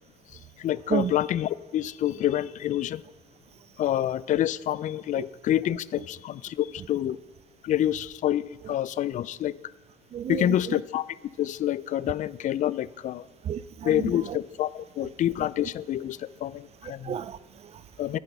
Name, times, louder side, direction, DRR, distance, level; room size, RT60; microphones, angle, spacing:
voice 1, 0.3-3.0 3.8-7.2 7.6-9.6 10.3-11.0 11.4-13.3 13.8-17.2 18.0-18.2, left 12 dB, 50° left, 0.4 m, -27 dB
voice 2, 10.1-10.8 13.4-14.4 16.8-17.8, right 9 dB, 40° right, 0.4 m, -32 dB
10.0 x 8.7 x 5.4 m
cardioid pair, 110°, 17 cm